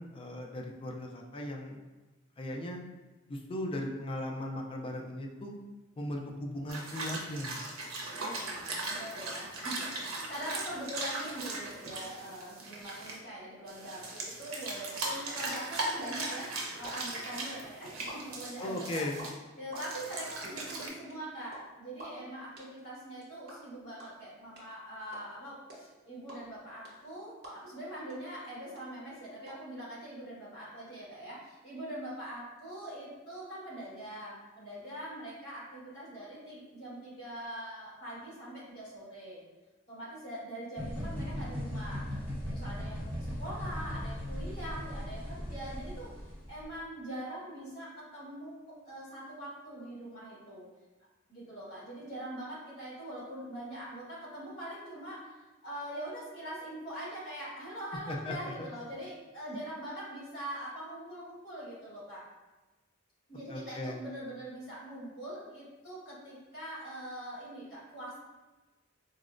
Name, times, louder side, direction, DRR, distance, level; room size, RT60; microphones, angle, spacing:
voice 1, 0.0-1.8 2.4-2.8 3.3-5.5 6.0-7.6 18.6-19.2 58.1-58.5 63.5-64.0, left 1 dB, 25° left, 1 dB, 0.3 m, -37 dB
sound 1, 6.7-13.2 13.7-19.3 19.7-20.9, right 2 dB, 80° right, 0.6 m, -39 dB
voice 2, 8.2-19.1 19.6-39.4 39.9-42.1 42.5-50.6 51.3-55.3 55.6-62.2 63.3-68.2, right 1 dB, 55° left, -7 dB, 1.4 m, -43 dB
sound 2, 16.8-16.9 17.1-19.2 19.5-27.8 28.1-28.2 28.4-29.5, right 2 dB, 55° right, 0.8 m, -49 dB
sound 3, 40.8-46.6, equal, 10° left, 0.9 m, -38 dB
3.9 x 2.0 x 2.4 m, 1.2 s
head